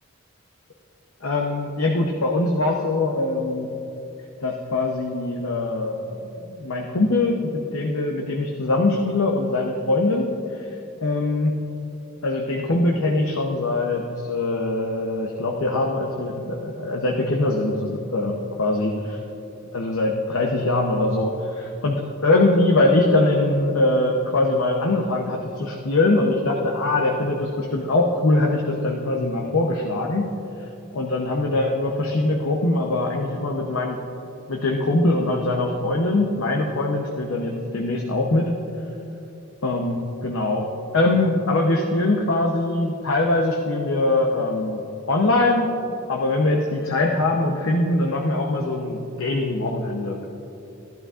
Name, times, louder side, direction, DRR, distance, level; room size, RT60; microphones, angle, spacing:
voice 1, 1.2-3.7 4.4-10.7 11.0-11.6 12.2-19.2 19.7-30.3 30.9-34.0 34.5-38.6 39.6-45.7 46.1-50.2, left 2 dB, 75° left, 0 dB, 0.8 m, -22 dB
14.5 x 12.0 x 2.5 m, 2.9 s
head